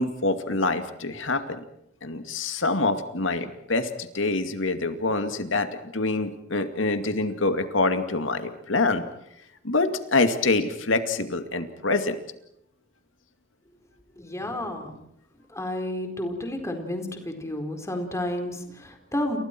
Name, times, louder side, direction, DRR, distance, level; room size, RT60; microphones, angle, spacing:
voice 1, 0.0-1.6 2.0-9.0 9.6-12.2, left 3 dB, 75° left, 8 dB, 2.4 m, -25 dB
voice 2, 14.2-14.9 15.5-19.4, left 1 dB, 15° left, 4 dB, 4.4 m, -31 dB
30.0 x 29.0 x 4.6 m, 0.77 s
head